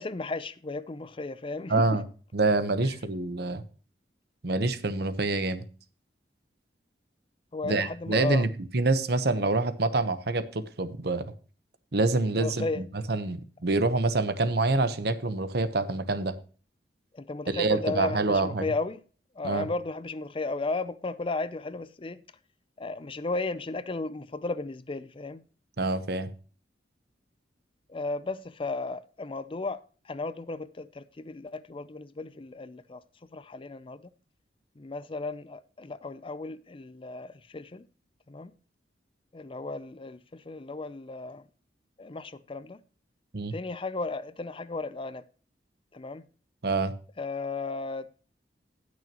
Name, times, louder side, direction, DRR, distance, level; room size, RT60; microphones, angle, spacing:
voice 1, 0.0-1.9 7.5-8.5 12.4-12.8 17.1-19.0 19.4-22.2 22.8-25.4 27.9-29.8 30.1-33.0 33.3-34.0 34.8-37.8 38.3-38.5 39.3-41.4 42.0-42.8 43.5-45.2 45.9-46.2 47.2-48.1, left 3 dB, 30° left, 0.5 m, -34 dB
voice 2, 1.7-2.0 2.3-3.6 4.4-5.6 7.6-8.5 8.7-11.3 11.9-16.4 17.5-18.7 19.4-19.7 25.8-26.3 43.3-43.5 46.6-46.9, right 3 dB, 65° right, 1.0 m, -26 dB
19.0 x 6.4 x 3.0 m
head